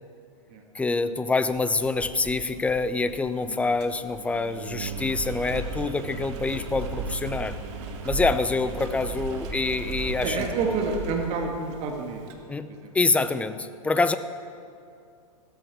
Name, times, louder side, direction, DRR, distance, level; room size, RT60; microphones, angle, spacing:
voice 1, 0.7-7.6 8.0-10.5 12.5-14.2, left 3 dB, 5° left, 12 dB, 0.5 m, -26 dB
Engine, 1.5-12.3, right 4 dB, 50° right, 2.0 m, -36 dB
voice 2, 10.2-12.2 12.6-12.9, right 4 dB, 35° right, 2 dB, 1.7 m, -29 dB
16.5 x 13.5 x 4.7 m, 2.4 s
hypercardioid pair, 115°, 19 cm